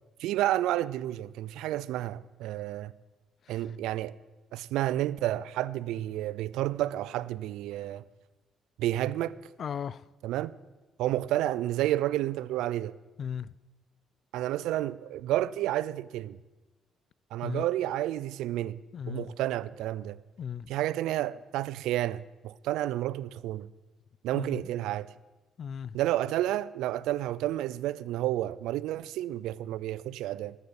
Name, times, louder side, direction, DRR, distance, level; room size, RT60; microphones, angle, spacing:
voice 1, 0.2-2.9 3.5-4.1 4.5-8.0 8.8-9.4 10.2-10.5 11.0-12.9 14.3-16.4 17.3-18.8 19.1-20.2 20.7-23.7 24.2-25.1 25.9-30.6, right 14 dB, 85° right, 0.4 m, -30 dB
voice 2, 9.6-10.0 13.2-13.5 17.4-17.6 18.9-19.3 20.4-20.7 24.3-24.7 25.6-26.0, left 8 dB, 55° left, 0.3 m, -36 dB
13.0 x 6.8 x 8.0 m
cardioid pair, 80°, 0 cm